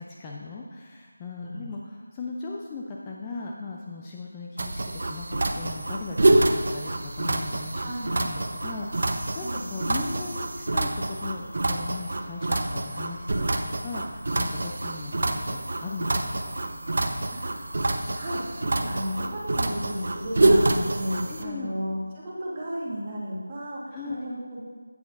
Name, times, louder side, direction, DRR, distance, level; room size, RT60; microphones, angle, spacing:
voice 1, 0.0-7.9 8.2-13.5 13.8-16.5 21.3-21.7 23.9-24.3, left 3 dB, 15° left, -2 dB, 0.4 m, -38 dB
sound 1, 4.6-21.4, right 2 dB, 55° right, 0.7 m, -26 dB
voice 2, 7.8-8.1 9.4-9.6 17.4-24.6, equal, 25° right, -5 dB, 1.5 m, -34 dB
9.4 x 8.3 x 2.6 m, 1.5 s
figure-of-eight pair, 165°, 0 cm